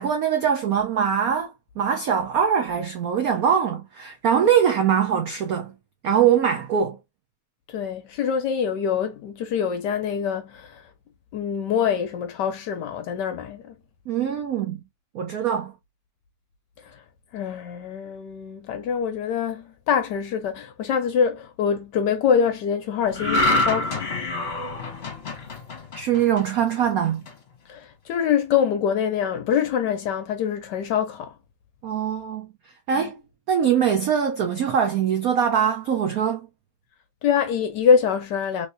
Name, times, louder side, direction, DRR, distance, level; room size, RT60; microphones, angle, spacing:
voice 1, 0.0-5.7 6.0-7.0 14.1-14.8 15.1-15.7 25.9-27.2 31.8-32.5 32.9-33.2 33.5-36.4, right 8 dB, 85° right, 0.8 m, -22 dB
voice 2, 7.7-10.8 11.3-13.7 17.3-24.1 27.7-31.3 33.0-33.1 37.2-38.7, left 7 dB, 70° left, 1.0 m, -24 dB
sound 1, 23.1-26.6 27.0-27.3, left 2 dB, 40° left, 1.0 m, -25 dB
3.3 x 3.1 x 2.6 m
omnidirectional pair, 2.3 m